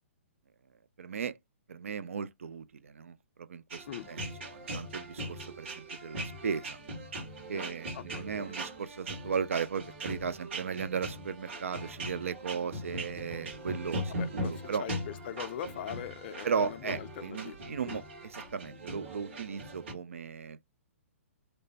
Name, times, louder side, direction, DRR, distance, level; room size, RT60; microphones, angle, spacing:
voice 1, 1.0-1.4 1.7-6.8 7.5-14.9 16.4-20.6, right 6 dB, 75° right, 0.4 m, -36 dB
sound 1, 3.7-19.9, right 1 dB, 55° right, 1.5 m, -40 dB
voice 2, 7.5-8.6 14.1-17.6 17.9-18.0, left 10 dB, 45° left, 0.4 m, -42 dB
3.0 x 2.1 x 2.7 m
figure-of-eight pair, 125°, 7 cm